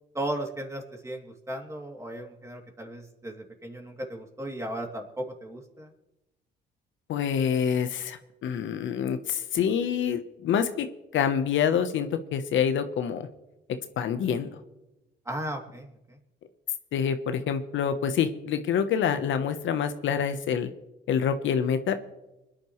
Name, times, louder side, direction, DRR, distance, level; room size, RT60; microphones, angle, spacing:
voice 1, 0.1-5.9 15.3-16.2, right 1 dB, 15° right, 1 dB, 2.8 m, -36 dB
voice 2, 7.1-10.9 11.1-13.3 14.0-14.6 16.9-20.7 21.1-21.9, left 7 dB, 75° left, 9 dB, 1.0 m, -26 dB
25.0 x 10.5 x 3.2 m, 0.96 s
cardioid pair, 90°, 20 cm